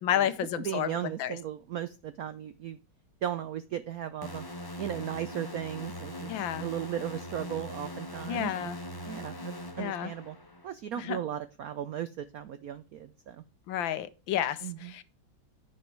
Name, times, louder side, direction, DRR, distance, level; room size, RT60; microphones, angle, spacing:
voice 1, 0.0-0.9 1.2-1.4 6.3-6.7 8.3-8.8 9.8-10.1 11.0-11.2 13.7-15.0, left 10 dB, 70° left, 1.5 m, -31 dB
voice 2, 0.6-2.8 3.2-4.5 4.8-6.3 6.6-8.7 9.0-10.4 10.6-13.4 14.6-14.9, right 10 dB, 75° right, 0.8 m, -36 dB
sound 1, 4.2-10.7, equal, 20° left, 0.6 m, -41 dB
10.5 x 6.4 x 4.5 m
omnidirectional pair, 2.2 m